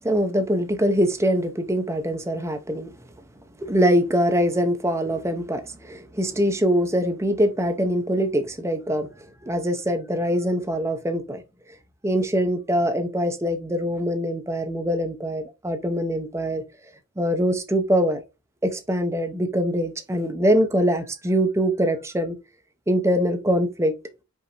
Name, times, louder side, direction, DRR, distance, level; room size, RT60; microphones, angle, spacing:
voice 1, 0.0-2.9 3.6-11.4 12.0-16.6 17.2-18.2 18.6-22.4 22.9-23.9, equal, 15° right, 0.6 m, -23 dB
5.3 x 2.7 x 2.8 m
head